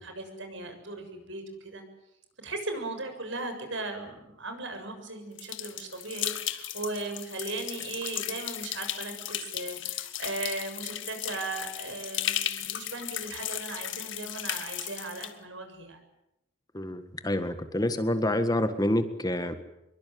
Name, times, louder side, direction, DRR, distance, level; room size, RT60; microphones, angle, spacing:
voice 1, 0.0-1.8 2.4-16.0, right 2 dB, 70° right, 7 dB, 7.1 m, -37 dB
sound 1, 5.4-15.3, left 12 dB, 70° left, 1.9 m, -35 dB
voice 2, 16.7-19.6, left 1 dB, 20° left, 9 dB, 1.7 m, -27 dB
26.0 x 23.0 x 9.5 m, 0.87 s
head